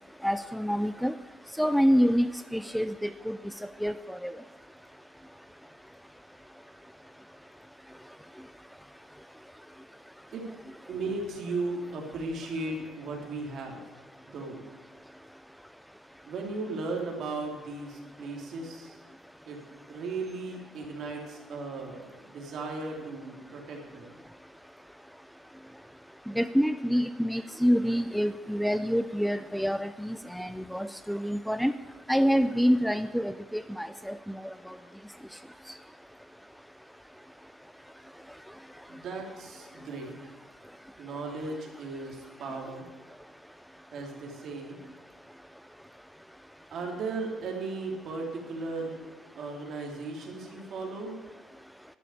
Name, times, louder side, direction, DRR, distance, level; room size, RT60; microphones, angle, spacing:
voice 1, 0.2-1.1 1.6-3.4 3.8-4.3 26.4-31.7 32.1-34.4, equal, ahead, 12 dB, 0.4 m, -27 dB
voice 2, 10.9-13.8 14.2-14.6 16.3-19.0 19.5-19.6 19.9-24.1 38.9-40.3 41.0-42.8 43.9-44.8 46.7-49.0 49.4-51.2, right 3 dB, 55° right, 1 dB, 3.4 m, -36 dB
12.0 x 6.8 x 9.8 m, 1.3 s
cardioid pair, 95°, 0 cm